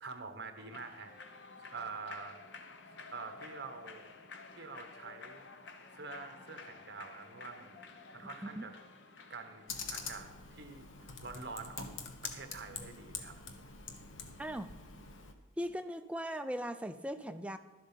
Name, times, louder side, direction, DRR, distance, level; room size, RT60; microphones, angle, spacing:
voice 1, 0.0-1.1 1.7-2.4 2.9-4.1 4.5-5.5 5.9-7.8 8.1-8.7 9.3-13.4, right 4 dB, 55° right, 7 dB, 1.1 m, -46 dB
Human voice / Clapping / Cheering, 0.6-10.3, left 4 dB, 60° left, 0.9 m, -52 dB
Computer keyboard, 9.7-15.3, left 5 dB, 75° left, 1.1 m, -45 dB
voice 2, 14.4-14.7 15.6-17.6, equal, 5° right, 9 dB, 0.4 m, -38 dB
12.0 x 7.7 x 5.7 m, 1.2 s
head